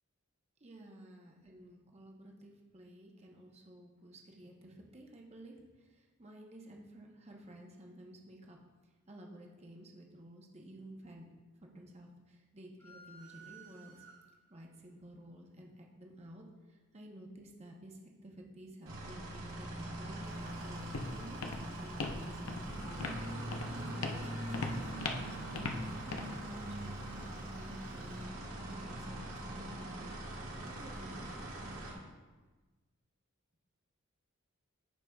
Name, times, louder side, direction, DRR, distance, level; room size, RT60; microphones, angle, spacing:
voice 1, 0.6-8.6 9.1-11.3 11.6-14.1 14.5-30.4 30.7-31.3, right 1 dB, 30° right, 0 dB, 0.8 m, -53 dB
sound 1, 12.8-14.6, right 4 dB, 15° left, 1.0 m, -55 dB
sound 2, 18.9-31.9, right 1 dB, 80° right, 1.8 m, -42 dB
Walk footsteps, 20.3-28.2, left 3 dB, 90° left, 0.7 m, -42 dB
14.5 x 4.9 x 2.3 m, 1.3 s
head